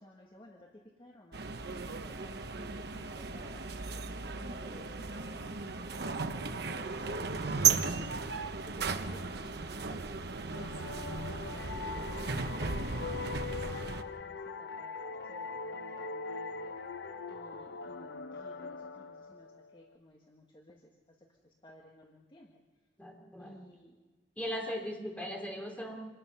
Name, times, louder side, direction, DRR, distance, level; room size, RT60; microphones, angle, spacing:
voice 1, 0.0-3.7 4.3-7.3 7.8-8.2 8.5-12.8 13.2-16.8 17.3-22.6 23.4-24.0, left 1 dB, 30° left, 0 dB, 1.7 m, -56 dB
sound 1, 1.3-14.0, right 5 dB, 65° right, 1.0 m, -35 dB
sound 2, 3.9-10.6 11.7-17.7, left 3 dB, 65° left, 3.3 m, -57 dB
sound 3, 10.5-19.9, left 4 dB, 90° left, 1.0 m, -42 dB
voice 2, 23.0-23.6 24.4-25.9, equal, 10° left, 1 dB, 3.2 m, -38 dB
26.0 x 19.5 x 5.6 m, 1.2 s
head